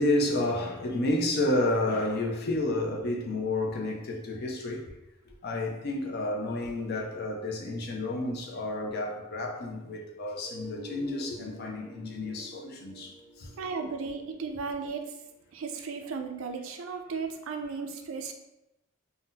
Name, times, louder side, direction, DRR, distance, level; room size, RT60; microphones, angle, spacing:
voice 1, 0.0-4.9 5.3-13.5 13.8-13.9, left 2 dB, 45° left, 0 dB, 0.5 m, -30 dB
sound 1, 10.4-16.2, right 1 dB, 5° left, 0.8 m, -50 dB
voice 2, 13.6-15.2 15.5-18.3, right 5 dB, 65° right, 5 dB, 0.4 m, -35 dB
2.7 x 2.1 x 3.8 m, 0.93 s
head